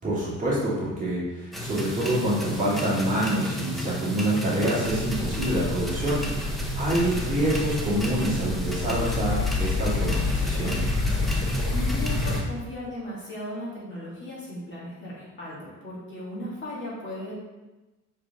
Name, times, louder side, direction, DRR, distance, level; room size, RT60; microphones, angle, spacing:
voice 1, 0.0-6.4 6.8-10.8, right 1 dB, 25° right, -8 dB, 2.1 m, -26 dB
sound 1, 1.5-12.4, equal, ahead, 0.8 m, -33 dB
sound 2, 4.8-12.4, left 3 dB, 90° left, 1.6 m, -29 dB
voice 2, 11.7-17.3, left 1 dB, 35° left, -7 dB, 2.1 m, -36 dB
5.8 x 5.0 x 3.5 m, 1.1 s
cardioid pair, 165°, 31 cm